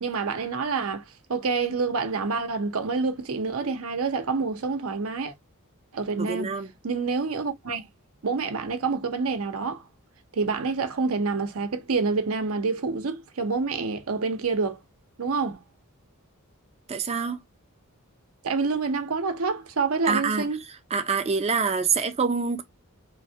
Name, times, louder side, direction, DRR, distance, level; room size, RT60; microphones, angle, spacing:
voice 1, 0.0-1.0 1.3-5.3 5.9-6.5 6.8-7.9 8.2-9.8 10.3-14.8 15.2-15.6 18.4-20.6, right 4 dB, 70° right, 0.7 m, -27 dB
voice 2, 6.2-6.7 16.9-17.4 20.1-20.5 20.9-22.6, right 5 dB, 30° right, 0.5 m, -25 dB
3.1 x 2.2 x 2.6 m
head